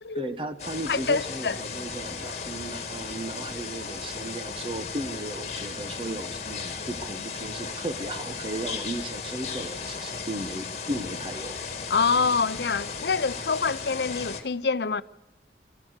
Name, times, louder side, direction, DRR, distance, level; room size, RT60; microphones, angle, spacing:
voice 1, 0.1-11.6, right 1 dB, 30° right, 1.1 m, -35 dB
sound 1, 0.6-14.4, left 5 dB, 40° left, 2.0 m, -36 dB
voice 2, 0.9-1.6 11.9-15.0, left 5 dB, 70° left, 0.6 m, -26 dB
24.5 x 14.5 x 8.2 m
head